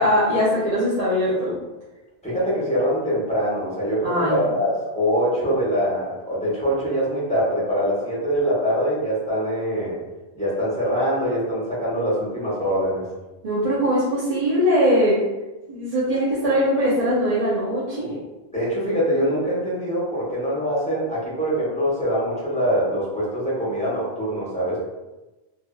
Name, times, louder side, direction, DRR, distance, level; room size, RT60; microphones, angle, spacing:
voice 1, 0.0-1.6 4.0-4.4 13.4-15.2 15.7-18.2, equal, 45° right, -9 dB, 0.6 m, -21 dB
voice 2, 2.2-9.9 10.3-13.0 18.5-24.8, equal, 5° left, -8 dB, 1.0 m, -23 dB
2.7 x 2.5 x 2.3 m, 1.1 s
omnidirectional pair, 1.1 m